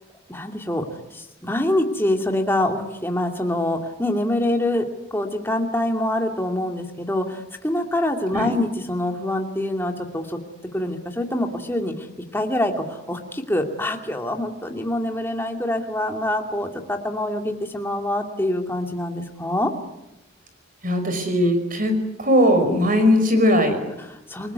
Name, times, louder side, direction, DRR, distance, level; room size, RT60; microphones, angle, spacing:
voice 1, 0.3-0.8 1.1-4.8 5.1-10.4 10.7-12.1 12.3-19.7 24.0-24.5, left 1 dB, 10° left, 3 dB, 2.6 m, -25 dB
voice 2, 20.8-21.9 22.2-23.8, equal, 40° right, 7 dB, 5.4 m, -19 dB
28.0 x 20.0 x 9.7 m, 0.91 s
head